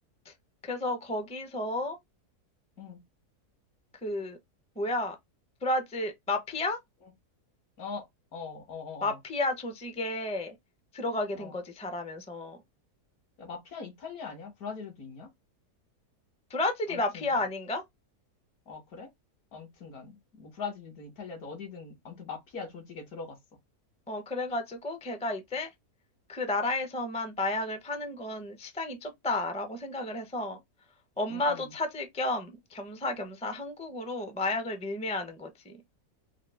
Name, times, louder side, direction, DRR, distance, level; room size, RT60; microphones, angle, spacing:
voice 1, 0.6-2.0 4.0-4.4 4.8-5.2 5.6-6.8 9.0-10.5 10.9-12.6 16.5-17.8 24.1-25.7 26.3-30.6 31.2-35.8, left 2 dB, 10° left, 0.3 m, -32 dB
voice 2, 8.3-9.2 11.3-11.6 13.4-15.3 16.9-17.4 18.7-19.1 19.5-23.4 31.3-31.7, left 5 dB, 65° left, 1.6 m, -41 dB
4.6 x 2.1 x 3.4 m
omnidirectional pair, 1.7 m